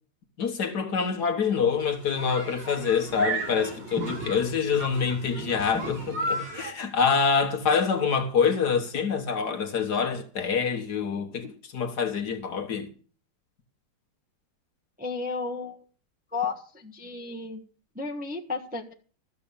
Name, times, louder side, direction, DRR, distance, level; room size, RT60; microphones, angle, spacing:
voice 1, 0.4-12.9, left 6 dB, 55° left, 1.8 m, -26 dB
sound 1, 1.7-6.7, right 1 dB, 90° right, 4.7 m, -34 dB
voice 2, 15.0-15.8 16.3-17.6 17.9-18.9, left 4 dB, 5° right, 1.0 m, -33 dB
13.5 x 7.7 x 6.9 m
omnidirectional pair, 2.2 m